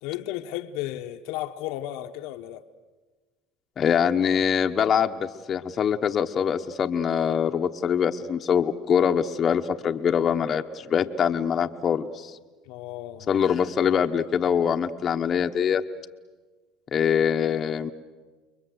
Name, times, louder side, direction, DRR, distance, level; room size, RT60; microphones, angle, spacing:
voice 1, 0.0-2.7 12.7-13.3, left 14 dB, 75° left, 1.1 m, -34 dB
voice 2, 3.8-12.3 13.3-15.8 16.9-17.9, left 8 dB, 40° left, 1.1 m, -24 dB
29.5 x 22.5 x 8.0 m
supercardioid pair, 105°, 0 cm